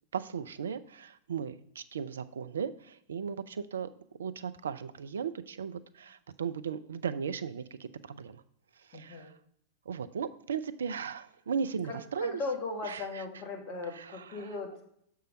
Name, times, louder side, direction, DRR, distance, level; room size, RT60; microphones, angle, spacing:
voice 1, 0.1-3.9 4.2-8.4 8.8-9.3 9.9-12.4 12.8-13.2 13.9-14.4, right 7 dB, 75° right, 14 dB, 0.4 m, -37 dB
voice 2, 8.9-9.3 11.9-14.8, left 3 dB, 40° left, 3 dB, 1.8 m, -38 dB
6.7 x 4.6 x 5.2 m, 0.71 s
figure-of-eight pair, 95°, 0 cm